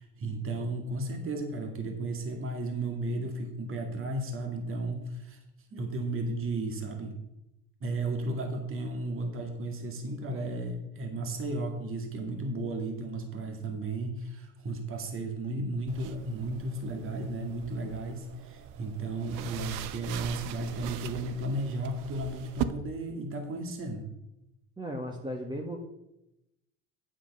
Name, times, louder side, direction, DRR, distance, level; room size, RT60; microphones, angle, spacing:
voice 1, 0.0-5.4 5.7-7.2 7.8-24.1, right 2 dB, 40° right, 3 dB, 2.2 m, -34 dB
sound 1, 15.9-22.6, right 12 dB, 65° right, 0.8 m, -40 dB
voice 2, 24.8-25.8, equal, 15° right, 1 dB, 1.4 m, -36 dB
9.0 x 7.4 x 5.5 m, 0.88 s
hypercardioid pair, 85°, 34 cm